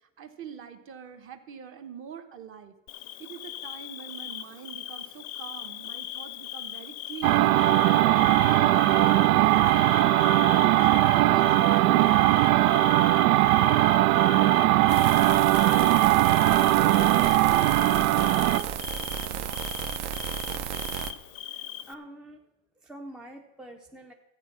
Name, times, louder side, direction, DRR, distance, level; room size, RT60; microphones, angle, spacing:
voice 1, 0.2-2.7 3.2-7.4 7.9-9.9 10.5-15.0 15.7-18.5 19.2-19.6, right 8 dB, 30° right, 7 dB, 1.2 m, -43 dB
Bird / Cricket, 2.9-21.9, left 13 dB, 40° left, 0.6 m, -39 dB
sound 1, 7.2-18.7, right 16 dB, 75° right, 0.5 m, -20 dB
sound 2, 14.9-21.1, right 10 dB, 45° right, 0.9 m, -34 dB
voice 2, 21.5-22.4 22.8-24.1, right 1 dB, ahead, 2 dB, 0.5 m, -45 dB
13.5 x 8.7 x 5.9 m, 0.92 s
supercardioid pair, 130°, 42 cm